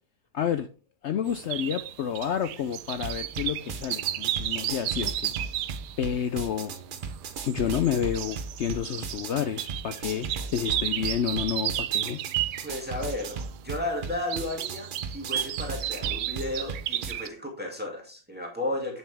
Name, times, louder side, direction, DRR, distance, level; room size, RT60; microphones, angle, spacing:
voice 1, 0.3-0.7 1.0-5.4 6.0-6.7 7.4-12.2, left 9 dB, 85° left, 0.6 m, -29 dB
sound 1, 1.3-17.3, right 12 dB, 85° right, 1.2 m, -33 dB
sound 2, 2.9-17.1, right 4 dB, 45° right, 0.7 m, -37 dB
voice 2, 12.6-13.4 13.6-19.0, left 1 dB, 5° right, 2.1 m, -33 dB
9.1 x 6.6 x 3.4 m
omnidirectional pair, 1.7 m